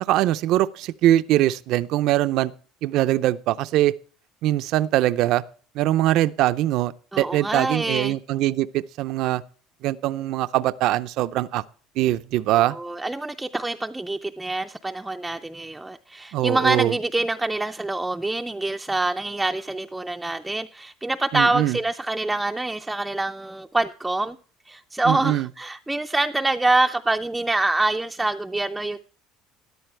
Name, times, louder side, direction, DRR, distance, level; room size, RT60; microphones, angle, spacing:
voice 1, 0.0-2.5 2.8-3.9 4.4-5.4 5.7-9.4 9.8-11.6 12.0-12.7 16.3-16.9 21.3-21.8 25.1-25.5, right 14 dB, 60° right, 0.5 m, -22 dB
voice 2, 7.1-8.2 12.5-24.4 24.7-29.0, right 2 dB, 5° right, 0.4 m, -25 dB
13.5 x 11.0 x 3.3 m
cardioid pair, 145°, 0 cm